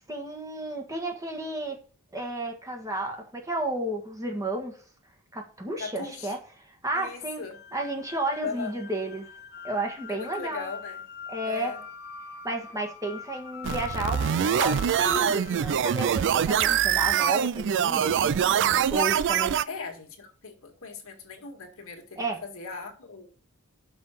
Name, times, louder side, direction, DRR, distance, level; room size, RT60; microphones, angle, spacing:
voice 1, 0.1-1.8 2.1-4.8 5.3-7.4 7.7-9.3 9.6-10.7 11.3-11.7 12.4-19.6 22.2-22.4, right 2 dB, 15° right, 1.5 m, -32 dB
voice 2, 5.8-6.4 6.9-7.6 8.4-8.7 10.1-11.0 11.4-11.8 19.7-23.3, left 5 dB, 70° left, 1.9 m, -38 dB
sound 1, 7.5-16.7, left 7 dB, 50° left, 0.9 m, -43 dB
sound 2, 13.6-19.6, right 8 dB, 55° right, 0.4 m, -24 dB
6.2 x 5.6 x 6.6 m
head